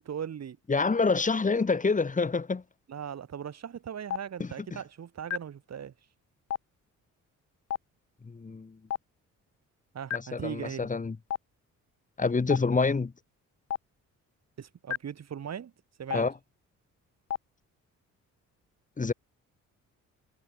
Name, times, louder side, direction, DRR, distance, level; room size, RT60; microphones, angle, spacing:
voice 1, 0.0-0.6 2.9-5.9 9.9-10.9 14.6-15.7 16.0-16.3, right 8 dB, 55° right, 4.0 m, -39 dB
voice 2, 0.7-2.6 4.4-4.5 8.3-8.8 10.1-11.2 12.2-13.1 16.1-16.3 19.0-19.1, left 4 dB, 25° left, 1.8 m, -27 dB
Stream, 4.1-4.2 5.3-5.4 6.5-6.6 7.7-7.8 8.9-9.0 10.1-10.2 11.3-11.4 12.5-12.6 13.7-13.8 14.9-15.0 16.1-16.2 17.3-17.4, left 9 dB, 55° left, 1.3 m, -31 dB
cardioid pair, 90°, 31 cm